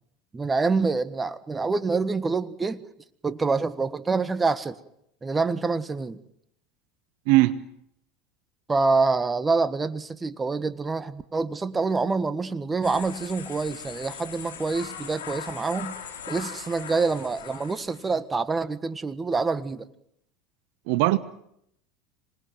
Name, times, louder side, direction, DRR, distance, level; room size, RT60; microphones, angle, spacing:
voice 1, 0.3-2.8 3.2-4.8 5.2-6.2 8.7-16.0 16.3-19.8, right 4 dB, 20° right, 1.5 m, -26 dB
voice 2, 7.3-7.6 20.9-21.2, right 18 dB, 60° right, 1.0 m, -19 dB
sound 1, 12.8-18.1, left 7 dB, 75° left, 3.5 m, -40 dB
26.5 x 19.5 x 9.3 m
figure-of-eight pair, 75°, 0 cm